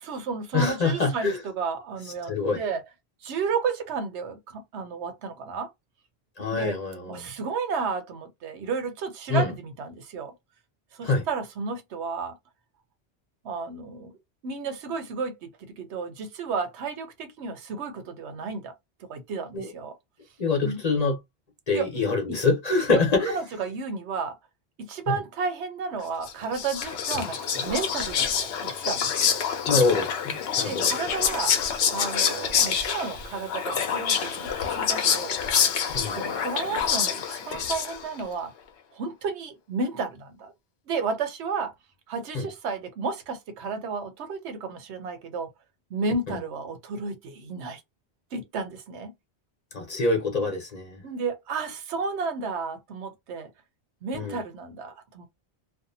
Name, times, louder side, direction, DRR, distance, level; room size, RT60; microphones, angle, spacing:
voice 1, 0.0-2.8 3.2-5.7 6.5-6.8 7.1-10.3 10.9-12.4 13.4-14.2 14.4-18.7 19.1-19.9 20.6-20.8 21.7-21.9 22.3-22.4 22.9-24.4 24.8-29.4 30.5-31.6 31.9-35.4 36.2-38.5 38.9-40.5 40.9-41.7 42.1-45.5 45.9-47.8 48.3-49.1 51.0-53.5 54.0-55.3, right 4 dB, 85° right, 1.0 m, -32 dB
voice 2, 0.5-1.4 2.3-2.6 6.4-7.3 9.3-9.5 11.0-11.2 19.5-19.7 20.4-21.2 21.7-23.4 29.7-30.8 35.9-36.2 42.3-42.5 46.3-46.4 49.7-51.0 54.1-54.4, left 3 dB, 40° left, 0.9 m, -25 dB
Whispering, 26.2-38.2, left 7 dB, 70° left, 0.8 m, -26 dB
2.6 x 2.1 x 2.6 m
omnidirectional pair, 1.1 m